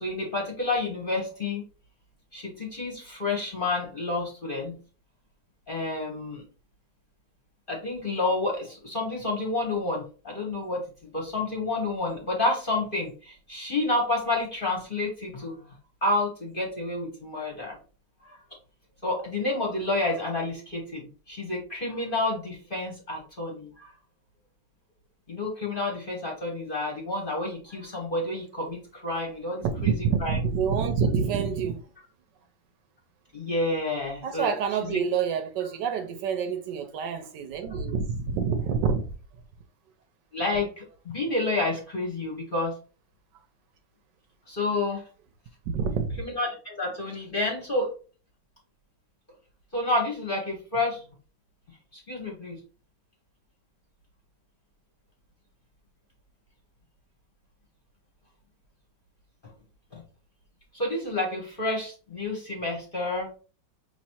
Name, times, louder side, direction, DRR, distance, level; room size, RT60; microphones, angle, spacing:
voice 1, 0.0-1.6 2.3-4.8 5.7-6.4 7.7-10.8 11.1-15.7 16.0-17.8 18.2-18.4 19.0-23.9 25.3-29.9 30.2-30.4 33.3-34.5 34.9-35.0 40.3-42.7 44.5-45.0 46.2-47.9 49.7-51.0 51.9-52.6 59.9-60.0 60.7-63.3, left 2 dB, 35° left, 1.0 m, -29 dB
voice 2, 29.6-31.8 33.4-33.5 34.2-39.1 45.7-46.2, right 6 dB, 75° right, 1.1 m, -27 dB
5.2 x 3.0 x 2.8 m
omnidirectional pair, 2.1 m